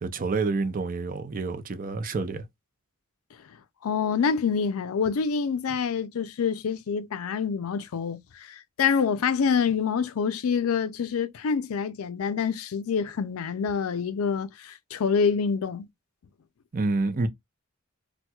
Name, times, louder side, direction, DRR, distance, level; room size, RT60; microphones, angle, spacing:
voice 1, 0.0-2.4 16.7-17.3, right 3 dB, 40° right, 0.5 m, -28 dB
voice 2, 3.8-15.9, left 6 dB, 85° left, 0.4 m, -26 dB
4.3 x 2.2 x 2.2 m
head